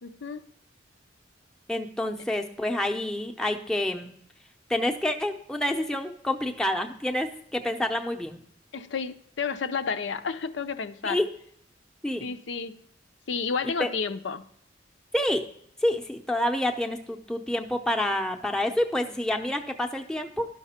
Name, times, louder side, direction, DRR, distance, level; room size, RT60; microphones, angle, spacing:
voice 1, 0.0-0.4 8.7-11.2 12.2-12.8 13.3-14.5, left 5 dB, 75° left, 9 dB, 0.6 m, -31 dB
voice 2, 1.7-4.1 4.7-8.4 11.0-11.3 12.0-12.3 13.8-13.9 15.1-15.4 15.8-20.5, left 1 dB, 5° left, 2 dB, 0.7 m, -28 dB
11.5 x 5.9 x 4.3 m, 0.68 s
head